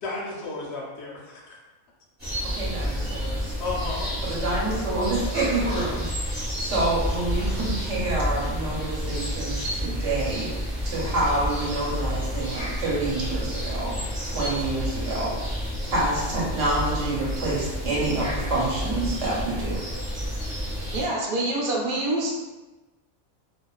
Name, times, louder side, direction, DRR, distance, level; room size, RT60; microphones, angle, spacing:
voice 1, 0.0-1.6 3.6-4.1, left 3 dB, 65° left, -3 dB, 0.7 m, -33 dB
sound 1, 2.2-21.1, equal, 20° right, 0.9 m, -30 dB
voice 2, 2.5-3.5 4.2-10.5 10.8-14.0 14.2-15.6 15.8-19.8, right 2 dB, 65° right, -6 dB, 1.0 m, -28 dB
voice 3, 20.9-22.3, right 2 dB, 85° right, -4 dB, 1.1 m, -26 dB
2.4 x 2.3 x 2.3 m, 1.1 s
omnidirectional pair, 1.4 m